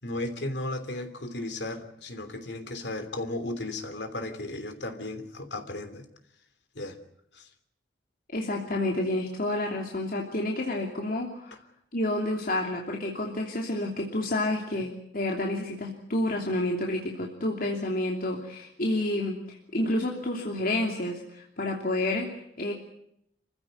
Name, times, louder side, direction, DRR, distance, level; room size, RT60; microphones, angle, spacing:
voice 1, 0.0-6.0 6.7-7.0 7.3-7.5, left 2 dB, 70° left, 8 dB, 3.2 m, -35 dB
voice 2, 8.3-11.6 11.9-22.7, left 1 dB, 55° left, 0 dB, 2.9 m, -29 dB
27.5 x 15.5 x 9.4 m, 0.75 s
head